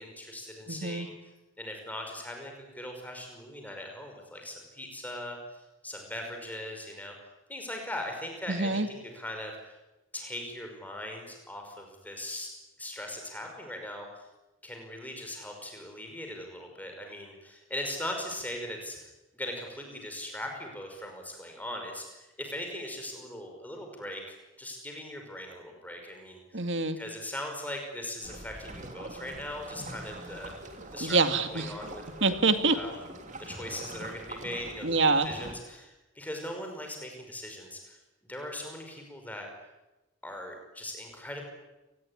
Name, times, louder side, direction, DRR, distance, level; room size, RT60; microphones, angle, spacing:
voice 1, 0.0-7.1 7.5-9.7 10.1-12.5 12.8-14.3 14.6-26.6 27.0-30.5 30.9-31.2 31.5-32.3 32.7-33.0 33.4-35.0 35.2-38.0 38.3-39.5 40.2-41.5, left 1 dB, 10° left, 3 dB, 5.6 m, -40 dB
voice 2, 0.7-1.1 8.5-8.9 26.5-27.0 31.0-31.7 32.2-32.8 34.8-35.3, right 3 dB, 60° right, 8 dB, 2.3 m, -25 dB
sound 1, 28.2-35.5, right 1 dB, 35° right, 3.2 m, -44 dB
28.5 x 20.0 x 9.9 m, 1.1 s
head